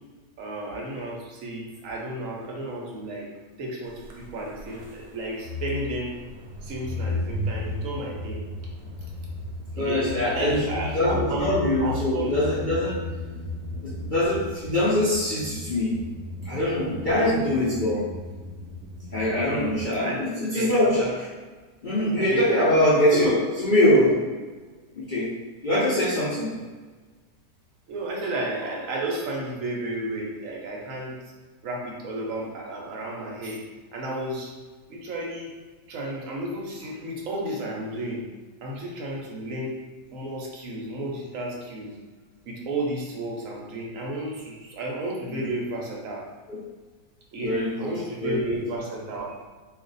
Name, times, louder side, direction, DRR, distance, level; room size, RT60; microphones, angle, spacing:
voice 1, 0.4-3.3 3.6-6.1 6.6-8.4 9.8-11.4 11.8-12.4 17.1-17.4 20.0-20.2 20.5-20.7 22.2-22.5 23.1-23.4 27.9-31.2 31.6-33.6 33.9-34.5 34.9-35.5 35.9-38.3 38.6-39.8 40.1-42.0 42.5-46.2 47.3-49.3, right 1 dB, 60° right, -2 dB, 0.9 m, -32 dB
sound 1, 4.0-19.9, left 2 dB, 80° right, 1.2 m, -35 dB
voice 2, 9.8-10.6 10.9-13.0 13.8-16.0 16.4-18.0 19.1-21.3 21.8-24.2 24.9-25.3 25.6-26.6 45.3-45.5 46.5-46.6 47.4-47.9 48.2-48.4, left 1 dB, 60° left, -9 dB, 0.5 m, -23 dB
2.5 x 2.4 x 3.9 m, 1.3 s
omnidirectional pair, 1.8 m